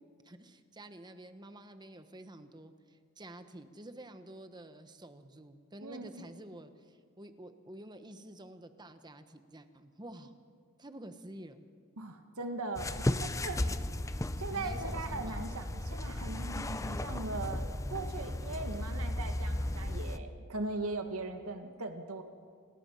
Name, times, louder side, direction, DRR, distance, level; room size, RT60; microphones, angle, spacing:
voice 1, 0.2-10.3 10.8-11.7 14.5-15.5, right 1 dB, 20° right, 9 dB, 1.2 m, -50 dB
voice 2, 5.8-6.2 12.0-13.6 14.2-22.2, right 2 dB, 85° right, 6 dB, 2.0 m, -40 dB
sound 1, 12.7-20.2, left 1 dB, 15° left, 0.6 m, -35 dB
28.5 x 20.0 x 5.7 m, 2.1 s
head